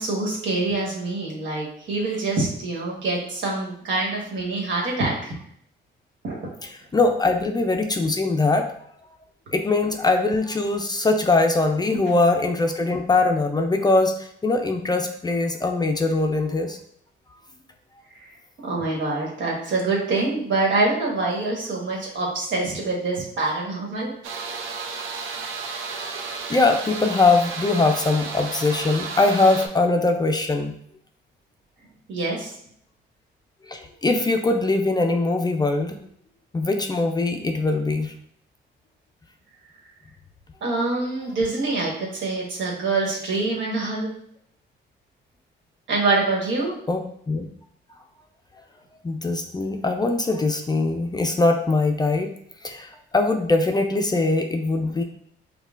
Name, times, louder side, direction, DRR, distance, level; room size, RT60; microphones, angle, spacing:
voice 1, 0.0-5.3 6.2-6.3 18.6-24.1 32.1-32.5 40.6-44.1 45.9-46.8, right 3 dB, 70° right, -2 dB, 1.3 m, -25 dB
voice 2, 6.9-8.7 9.5-16.8 26.3-30.8 33.6-36.0 36.5-38.1 46.9-47.5 49.0-52.3 52.6-55.0, left 3 dB, 20° left, 4 dB, 0.4 m, -22 dB
sound 1, 24.2-29.7, right 4 dB, 90° right, 0.5 m, -32 dB
5.2 x 2.3 x 2.4 m, 0.67 s
cardioid pair, 90°, 20 cm